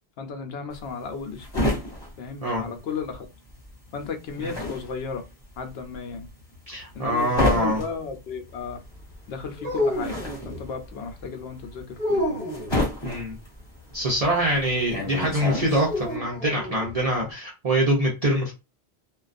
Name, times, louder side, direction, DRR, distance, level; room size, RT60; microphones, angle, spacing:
voice 1, 0.2-1.7 2.2-3.3 3.9-5.2 5.6-6.3 6.9-8.8 9.3-12.5 14.5-14.7, left 5 dB, 70° left, 0.8 m, -34 dB
sound 1, 0.7-3.3 3.5-16.1, left 1 dB, 25° left, 1.2 m, -30 dB
voice 2, 6.7-7.8 13.0-13.4 13.9-18.5, right 1 dB, 40° right, 0.7 m, -24 dB
sound 2, 9.6-10.6 12.0-12.8 15.9-16.9, left 1 dB, 10° left, 1.4 m, -28 dB
2.3 x 2.3 x 2.5 m
omnidirectional pair, 1.1 m